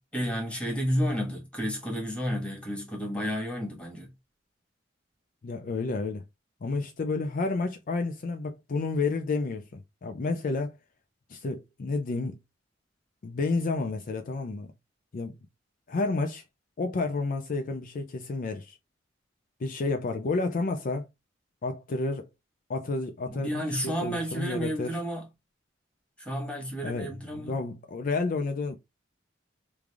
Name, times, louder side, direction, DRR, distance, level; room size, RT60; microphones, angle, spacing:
voice 1, 0.1-4.1 23.3-25.3 26.2-27.6, equal, 5° left, 1.3 m, -31 dB
voice 2, 5.4-6.2 6.6-10.7 11.3-12.4 13.2-14.7 15.1-15.3 15.9-16.4 16.8-18.8 19.6-21.1 21.6-22.3 22.7-25.0 26.8-28.8, left 3 dB, 45° left, 0.4 m, -30 dB
3.2 x 2.5 x 3.4 m
head